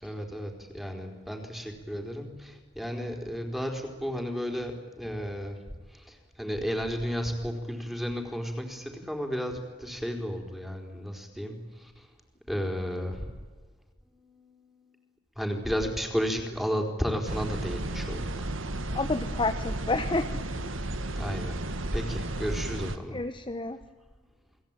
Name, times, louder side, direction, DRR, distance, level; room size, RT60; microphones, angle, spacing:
voice 1, 0.0-5.6 5.9-12.1 12.5-13.3 14.1-14.7 15.4-18.5 21.1-21.6 21.9-23.2, equal, ahead, 4 dB, 4.3 m, -33 dB
sound 1, 17.3-23.0, right 1 dB, 85° right, 1.8 m, -33 dB
voice 2, 18.9-20.3 23.1-23.8, left 3 dB, 25° left, 7 dB, 1.1 m, -29 dB
29.5 x 21.0 x 9.0 m, 1.3 s
head